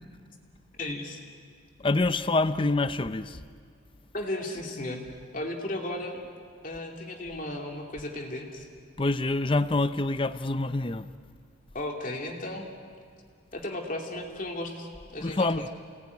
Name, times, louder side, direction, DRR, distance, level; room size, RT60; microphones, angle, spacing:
voice 1, 0.8-1.2 4.1-5.1 5.3-6.2 6.6-8.7 11.7-12.7 13.5-15.7, left 1 dB, 40° left, 1 dB, 2.7 m, -35 dB
voice 2, 1.8-3.4 9.0-11.1 15.2-15.7, left 2 dB, 25° left, 12 dB, 0.6 m, -26 dB
30.0 x 19.0 x 9.6 m, 2.1 s
head